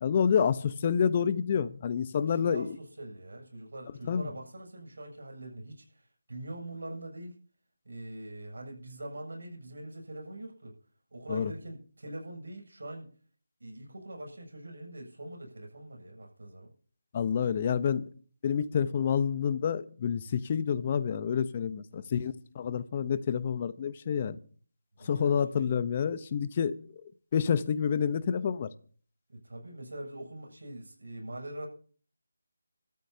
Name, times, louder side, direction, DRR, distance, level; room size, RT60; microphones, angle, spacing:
voice 1, 0.0-2.8 4.1-4.3 11.3-11.5 17.1-18.0 18.4-24.4 25.0-26.7 27.3-28.7, left 7 dB, 30° left, 0.9 m, -28 dB
voice 2, 2.2-7.3 7.8-10.7 11.1-13.1 13.6-16.7 21.9-22.0 25.0-25.7 29.3-31.7, right 1 dB, 75° right, 7.6 m, -43 dB
25.5 x 13.5 x 2.9 m
figure-of-eight pair, 165°, 0 cm